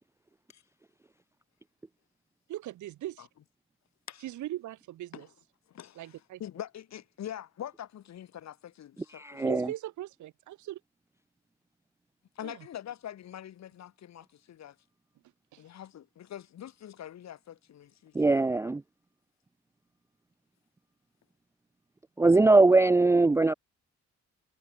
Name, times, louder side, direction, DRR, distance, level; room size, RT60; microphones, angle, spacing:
voice 1, 2.5-3.3 4.2-5.3 6.0-6.4 9.4-10.8 12.4-12.7 15.5-15.6, right 14 dB, 75° right, 1.1 m, -39 dB
voice 2, 5.7-9.4 12.4-14.8 15.6-18.3 23.3-23.4, left 11 dB, 60° left, 1.8 m, -44 dB
voice 3, 9.2-9.7 18.2-18.8 22.2-23.5, right 3 dB, 10° right, 0.4 m, -21 dB
cardioid pair, 90°, 30 cm